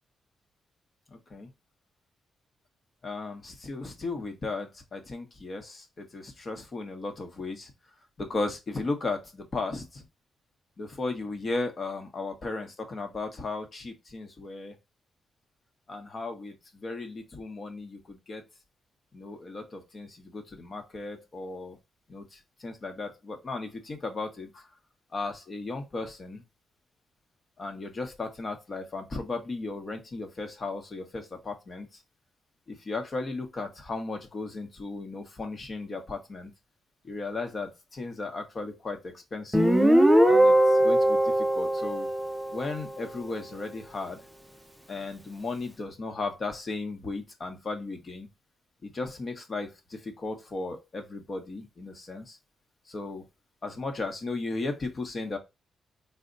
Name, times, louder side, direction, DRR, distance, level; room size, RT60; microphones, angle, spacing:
voice 1, 1.1-1.5 3.0-7.7 8.2-10.0 10.8-14.8 15.9-18.4 19.1-21.8 22.1-24.7 25.1-26.4 27.6-31.9 32.7-36.5 37.0-39.7 40.3-42.1 42.5-44.2 44.9-48.3 48.8-52.4 52.9-53.3 53.6-55.4, left 3 dB, 45° left, 1.1 m, -36 dB
Guitar, 39.5-43.0, right 1 dB, ahead, 0.6 m, -21 dB
4.1 x 2.2 x 3.8 m
cardioid pair, 80°, 0 cm